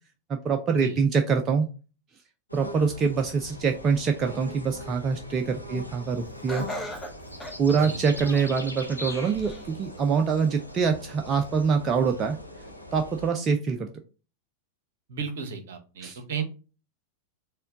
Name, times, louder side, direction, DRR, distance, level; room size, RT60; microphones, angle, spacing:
voice 1, 0.3-1.7 2.5-6.7 7.6-12.4 12.9-13.9 16.0-16.2, right 5 dB, 25° right, 5 dB, 0.5 m, -25 dB
sound 1, 2.5-13.3, left 1 dB, 90° left, 0.6 m, -41 dB
Laughter, 6.5-8.6 9.1-9.7 10.2-10.3 11.3-11.4, equal, 15° left, 0.9 m, -38 dB
voice 2, 15.1-16.4, right 6 dB, 60° right, 6 dB, 0.9 m, -34 dB
4.3 x 2.2 x 3.7 m, 0.34 s
figure-of-eight pair, 90°, 0 cm